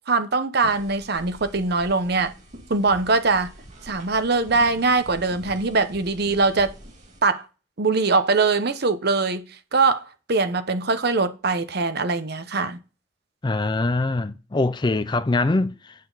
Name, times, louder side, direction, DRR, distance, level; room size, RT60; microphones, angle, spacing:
voice 1, 0.1-2.3 2.7-3.5 3.8-6.7 7.2-7.4 7.8-9.4 9.7-12.8, right 3 dB, 55° right, 0.9 m, -22 dB
sound 1, 0.6-7.2, right 1 dB, 40° right, 2.0 m, -45 dB
voice 2, 13.4-15.9, left 2 dB, 25° left, 0.4 m, -23 dB
9.2 x 6.6 x 4.0 m
head